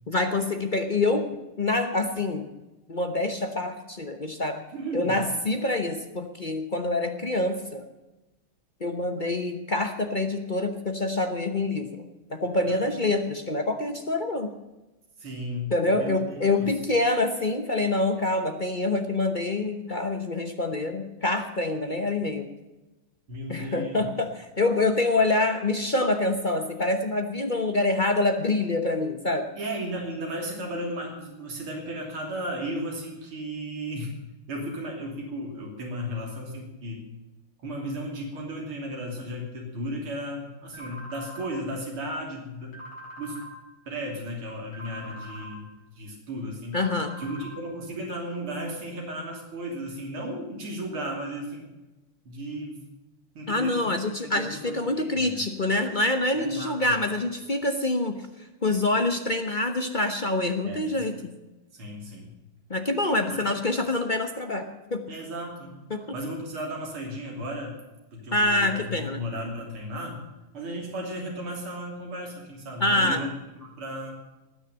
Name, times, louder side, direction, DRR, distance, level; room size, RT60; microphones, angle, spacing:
voice 1, 0.1-1.3 1.6-2.5 2.9-4.6 4.9-7.9 8.8-12.0 12.3-14.5 15.7-22.5 23.5-29.5 46.7-47.1 53.5-58.2 58.6-61.3 62.7-65.1 65.9-66.0 68.3-69.2 72.8-73.2, left 2 dB, 35° left, 6 dB, 0.8 m, -26 dB
voice 2, 4.7-5.2 12.7-12.8 15.2-16.7 23.3-24.1 29.6-34.1 34.5-37.0 37.6-42.9 43.2-43.5 43.9-45.7 46.0-46.8 47.2-51.7 52.3-52.9 53.4-53.9 54.2-55.4 56.3-57.0 60.6-61.1 61.7-62.3 63.3-63.4 65.1-65.8 66.1-67.8 68.1-70.3 70.5-73.3 73.6-74.1, equal, 80° right, -1 dB, 3.9 m, -35 dB
sound 1, 40.7-41.5 42.7-43.5 44.7-45.5 46.7-47.5, equal, 65° left, 4.9 m, -42 dB
19.5 x 6.6 x 9.0 m, 1.1 s
omnidirectional pair, 2.3 m